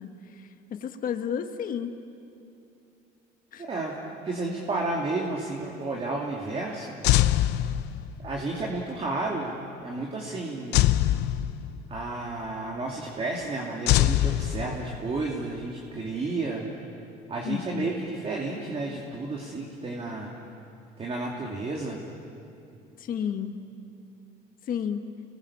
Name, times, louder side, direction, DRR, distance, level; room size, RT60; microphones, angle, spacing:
voice 1, 0.0-1.9 3.5-3.6 17.4-18.0 23.0-23.6 24.7-25.0, left 8 dB, 55° left, 6 dB, 1.4 m, -32 dB
voice 2, 3.6-6.9 8.2-10.8 11.9-16.6 17.3-20.3 21.0-22.0, right 2 dB, 35° right, -2 dB, 2.8 m, -32 dB
sound 1, 7.0-8.3 10.7-12.0 13.9-15.2, left 13 dB, 85° left, 0.7 m, -23 dB
29.0 x 20.5 x 7.3 m, 2.6 s
cardioid pair, 110°, 17 cm